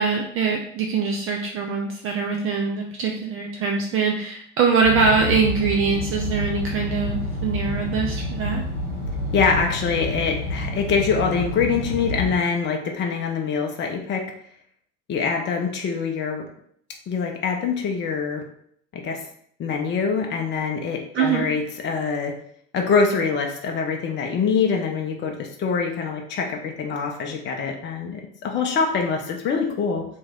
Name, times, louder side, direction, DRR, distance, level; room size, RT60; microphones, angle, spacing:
voice 1, 0.0-8.6 21.1-21.5, right 5 dB, 35° right, 1 dB, 0.5 m, -23 dB
sound 1, 4.8-12.4, left 1 dB, 60° right, 1.3 m, -28 dB
voice 2, 9.3-14.3 15.1-16.5 17.1-18.4 18.9-19.2 19.6-22.4 22.7-30.1, left 5 dB, 30° left, 2 dB, 0.6 m, -24 dB
3.0 x 2.7 x 3.6 m, 0.65 s
figure-of-eight pair, 65°, 38 cm